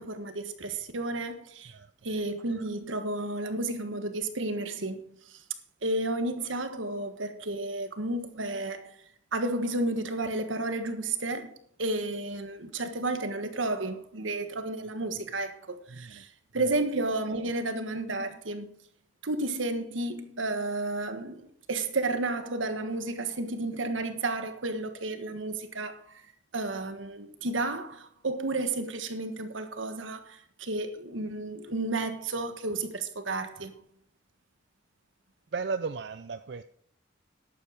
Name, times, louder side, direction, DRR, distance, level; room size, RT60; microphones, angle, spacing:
voice 1, 0.0-1.7 2.0-5.4 5.8-9.0 9.3-16.3 16.5-18.7 19.2-26.2 26.5-33.7, right 2 dB, 90° right, 1.5 m, -32 dB
voice 2, 15.9-16.2 16.6-16.7 35.5-36.6, right 4 dB, 60° right, 0.5 m, -35 dB
11.5 x 8.5 x 5.0 m
head